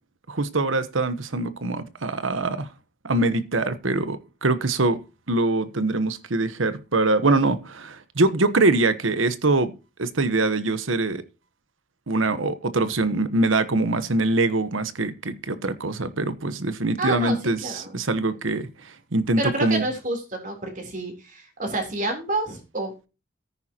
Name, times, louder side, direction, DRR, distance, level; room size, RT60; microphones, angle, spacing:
voice 1, 0.3-2.7 3.0-5.0 5.3-9.7 10.0-11.2 12.1-19.8, right 2 dB, 80° right, 1.2 m, -23 dB
voice 2, 17.0-17.4 17.6-17.9 19.4-22.9, right 2 dB, 40° right, 3.6 m, -29 dB
14.0 x 9.6 x 2.9 m
head